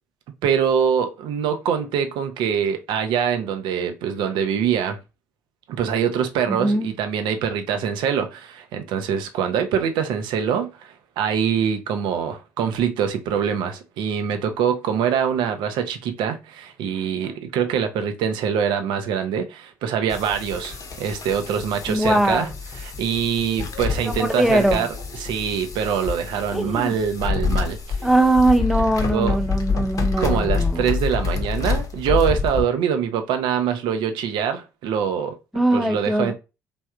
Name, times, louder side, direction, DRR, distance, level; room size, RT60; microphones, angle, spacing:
voice 1, 0.4-5.0 5.7-22.5 22.8-24.9 25.1-28.0 29.1-29.4 30.2-35.4 35.7-36.3, right 7 dB, 70° right, 0.5 m, -24 dB
voice 2, 6.5-6.9 21.9-22.5 24.0-24.9 26.5-27.0 28.0-30.9 35.5-36.3, right 1 dB, ahead, 0.6 m, -21 dB
sound 1, 20.1-32.6, left 5 dB, 45° left, 0.8 m, -27 dB
3.2 x 2.6 x 2.3 m
hypercardioid pair, 50°, 8 cm